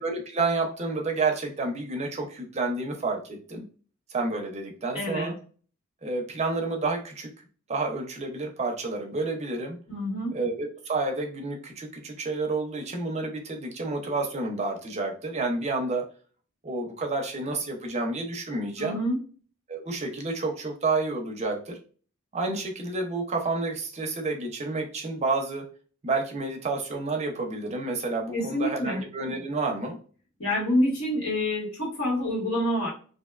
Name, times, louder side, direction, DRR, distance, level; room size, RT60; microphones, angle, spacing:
voice 1, 0.0-3.6 4.1-5.3 6.0-7.3 7.7-9.8 10.3-16.0 16.6-19.0 19.7-21.8 22.3-25.6 26.0-30.0, right 3 dB, 35° right, 3 dB, 0.5 m, -30 dB
voice 2, 4.9-5.3 9.9-10.3 18.8-19.2 28.3-29.0 30.4-32.9, left 1 dB, 75° left, -6 dB, 1.3 m, -27 dB
2.6 x 2.2 x 2.3 m, 0.41 s
head